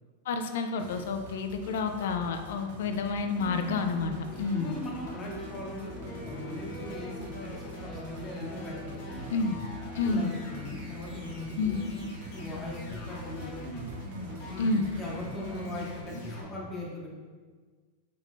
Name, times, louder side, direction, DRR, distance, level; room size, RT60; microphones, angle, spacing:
voice 1, 0.3-4.7 9.3-9.6 9.9-10.3 11.6-11.8 14.6-14.9, left 4 dB, 75° left, 6 dB, 0.3 m, -29 dB
sound 1, 0.8-16.0, right 1 dB, 70° right, 0.5 m, -47 dB
sound 2, 3.4-16.4, equal, 55° left, 1.0 m, -41 dB
voice 2, 4.3-9.3 10.0-11.9 12.3-13.9 14.5-17.1, left 1 dB, 20° left, -3 dB, 0.8 m, -40 dB
sound 3, 6.0-16.1, left 1 dB, 55° right, 0.9 m, -48 dB
3.5 x 3.2 x 2.4 m, 1.5 s
supercardioid pair, 145°, 0 cm